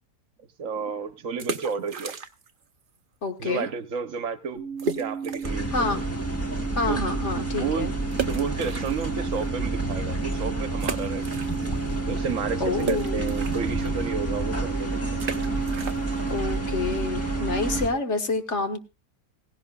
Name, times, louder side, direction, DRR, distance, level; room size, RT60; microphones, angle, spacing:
voice 1, 0.6-2.1 3.4-4.6 5.0-5.9 6.9-7.9 8.3-11.4 12.1-15.2, right 6 dB, 60° right, 9 dB, 1.3 m, -31 dB
sound 1, 1.3-2.6 2.9-3.0 3.6-3.7 4.0-4.1 4.8-5.7 6.2-6.3 8.1-9.4 9.9-10.0 10.8-12.0 12.2-17.7, right 5 dB, 40° right, 0.8 m, -35 dB
voice 2, 3.2-3.7 5.7-6.0 6.7-7.9 12.6-13.3 16.3-18.8, left 3 dB, 50° left, 6 dB, 1.6 m, -28 dB
sound 2, 4.6-17.9, right 5 dB, 85° left, 6.0 m, -33 dB
sound 3, 5.4-17.9, right 1 dB, 10° left, 1.3 m, -30 dB
17.0 x 16.0 x 2.3 m, 0.28 s
omnidirectional pair, 1.6 m